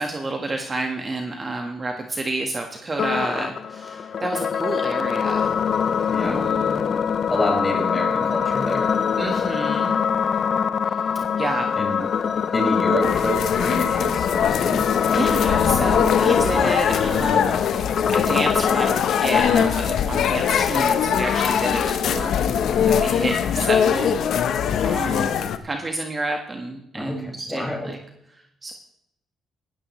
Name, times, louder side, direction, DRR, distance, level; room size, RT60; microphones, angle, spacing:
voice 1, 0.0-5.5 6.2-6.9 9.1-10.0 10.9-11.0 11.4-11.7 15.1-17.6 18.1-22.4 22.9-25.3 25.6-28.0 28.3-28.7, right 2 dB, 30° right, 3 dB, 1.6 m, -29 dB
sound 1, 3.0-19.0, left 7 dB, 55° left, 0.6 m, -24 dB
voice 2, 6.1-6.4 7.3-8.9 11.8-12.0 12.5-14.9 26.9-28.0, left 1 dB, 15° left, -1 dB, 5.9 m, -27 dB
sound 2, 13.0-25.6, left 8 dB, 70° left, 1.0 m, -22 dB
17.5 x 13.0 x 3.2 m, 0.77 s
cardioid pair, 90°, 0 cm